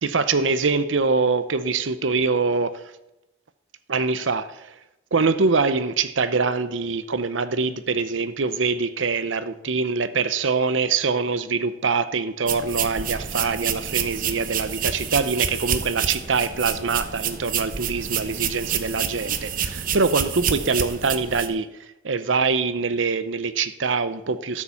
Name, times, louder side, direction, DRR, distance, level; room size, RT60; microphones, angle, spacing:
voice 1, 0.0-2.9 3.9-4.7 5.1-21.7 22.0-24.6, right 4 dB, 90° right, 12 dB, 0.7 m, -24 dB
sound 1, 12.5-21.5, right 7 dB, 45° right, 0.9 m, -28 dB
12.5 x 7.2 x 7.1 m, 0.91 s
head